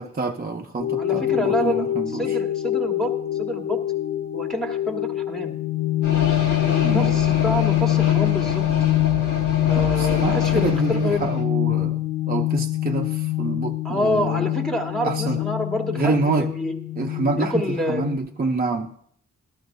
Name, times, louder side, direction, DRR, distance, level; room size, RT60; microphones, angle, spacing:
voice 1, 0.0-2.4 6.8-7.1 9.7-12.0 12.3-14.5 15.0-15.4 15.9-16.5 17.0-18.9, right 3 dB, 30° right, 1 dB, 0.7 m, -27 dB
sound 1, 0.8-18.2, left 15 dB, 50° left, 0.8 m, -24 dB
voice 2, 1.0-3.1 3.4-3.8 4.3-5.5 6.6-8.6 9.7-11.3 13.8-16.7 17.4-18.1, left 1 dB, ahead, 1 dB, 1.5 m, -27 dB
sound 2, 6.0-11.4, left 3 dB, 65° left, 1.5 m, -28 dB
14.5 x 12.0 x 2.7 m, 0.63 s
wide cardioid pair, 100°, 33 cm